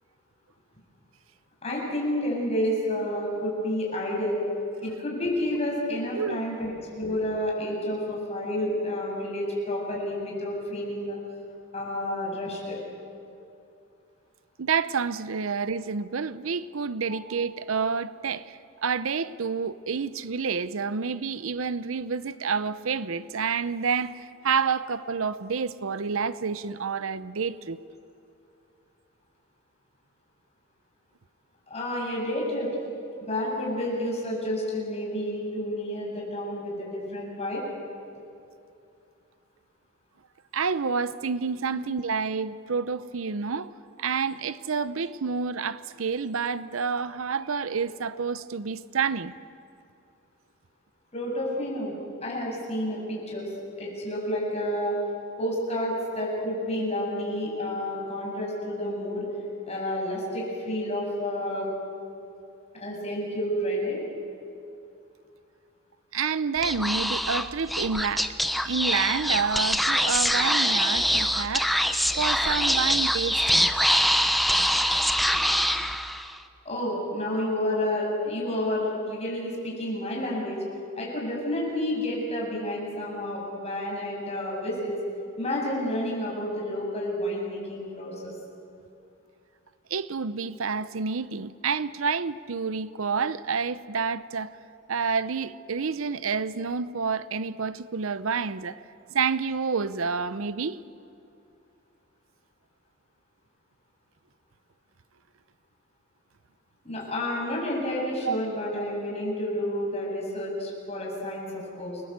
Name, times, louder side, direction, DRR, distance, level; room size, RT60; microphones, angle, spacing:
voice 1, 1.6-4.4 4.8-11.2 11.7-12.8 17.1-17.2 31.7-32.8 33.2-37.6 41.7-41.8 51.1-52.0 52.2-53.5 53.8-55.0 55.4-59.3 59.7-61.7 62.8-64.0 76.6-80.6 81.0-85.0 85.4-88.3 106.8-112.0, left 1 dB, 30° left, 7.5 m, -30 dB
voice 2, 6.2-6.5 14.6-27.8 40.5-43.7 44.0-49.3 66.1-68.3 68.6-73.7 89.9-94.5 94.9-98.8 99.1-100.8 108.2-108.4, right 5 dB, 75° right, 0.7 m, -29 dB
Speech / Whispering, 66.6-76.4, equal, ahead, 0.8 m, -24 dB
29.5 x 20.5 x 8.1 m
head